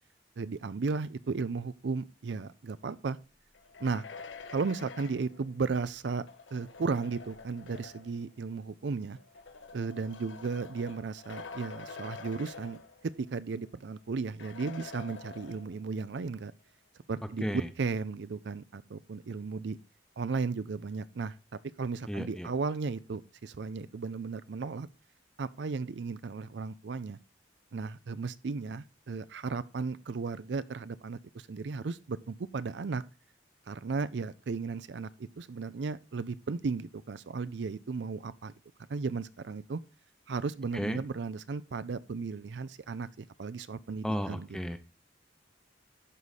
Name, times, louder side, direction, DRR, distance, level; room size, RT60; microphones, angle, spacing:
voice 1, 0.4-3.2 3.8-4.0 4.5-6.3 6.5-9.2 9.7-12.8 13.2-16.5 17.1-19.8 20.2-21.3 21.8-24.9 25.4-27.2 27.7-33.0 33.7-38.5 38.9-39.8 40.3-44.5, right 4 dB, 65° right, 0.4 m, -35 dB
sound 1, 3.5-8.2 9.2-13.3 13.7-13.8 14.4-15.9, left 4 dB, 85° left, 0.9 m, -47 dB
voice 2, 22.1-22.5 40.7-41.0 44.0-44.8, equal, 5° left, 0.7 m, -33 dB
12.0 x 4.8 x 4.1 m
head